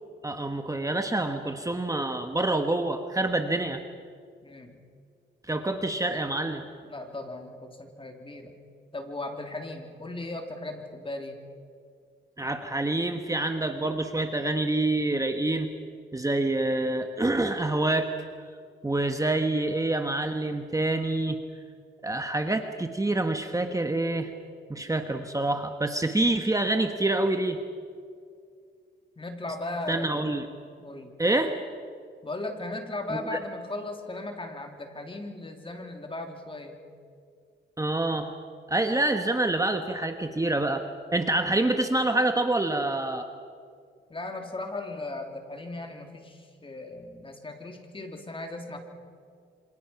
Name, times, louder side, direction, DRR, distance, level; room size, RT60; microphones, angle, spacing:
voice 1, 0.2-3.8 5.5-6.6 12.4-15.7 16.1-18.1 18.8-21.4 22.0-24.3 24.7-27.6 29.9-30.4 31.2-31.6 33.1-33.4 37.8-38.3 38.7-40.8 41.1-43.3, right 2 dB, 15° right, 5 dB, 1.4 m, -27 dB
voice 2, 4.4-4.8 6.8-8.5 8.9-11.4 29.2-30.2 30.8-31.1 32.2-36.8 44.1-48.8, left 2 dB, 25° left, 3 dB, 3.4 m, -37 dB
27.5 x 26.5 x 5.9 m, 2.2 s
cardioid pair, 95°, 20 cm